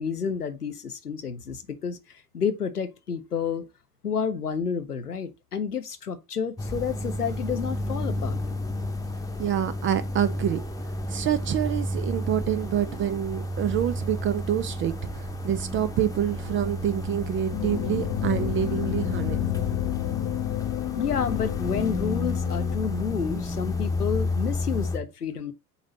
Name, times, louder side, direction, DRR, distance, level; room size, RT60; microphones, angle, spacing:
voice 1, 0.0-2.0 2.3-3.7 4.0-8.4 21.0-25.5, left 6 dB, 90° left, 0.7 m, -30 dB
sound 1, 6.6-25.0, left 2 dB, 10° left, 1.0 m, -31 dB
voice 2, 9.4-10.6 11.1-19.4, right 10 dB, 30° right, 0.4 m, -27 dB
sound 2, 17.5-23.0, left 12 dB, 40° left, 0.6 m, -31 dB
7.9 x 3.1 x 3.9 m
figure-of-eight pair, 60°, 44 cm